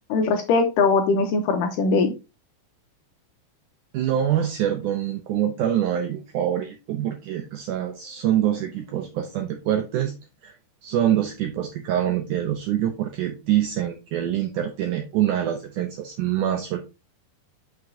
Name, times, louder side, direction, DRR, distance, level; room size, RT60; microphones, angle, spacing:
voice 1, 0.1-2.1, left 4 dB, 80° left, 6 dB, 2.0 m, -21 dB
voice 2, 3.9-10.1 10.4-10.5 10.8-16.8, right 11 dB, 80° right, 5 dB, 1.8 m, -25 dB
7.7 x 5.9 x 2.6 m, 0.27 s
omnidirectional pair, 4.4 m